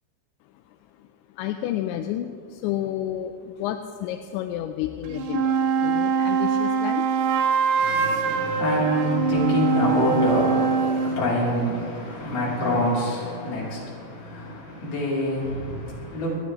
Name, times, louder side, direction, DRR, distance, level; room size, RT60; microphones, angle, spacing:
voice 1, 1.3-7.1 14.5-14.9, left 11 dB, 85° left, 6 dB, 2.8 m, -31 dB
sound 1, 5.0-11.2, right 5 dB, 75° right, 2.6 m, -23 dB
voice 2, 7.8-16.4, left 1 dB, 55° left, -7 dB, 5.4 m, -26 dB
28.0 x 10.5 x 3.2 m, 2.4 s
omnidirectional pair, 5.4 m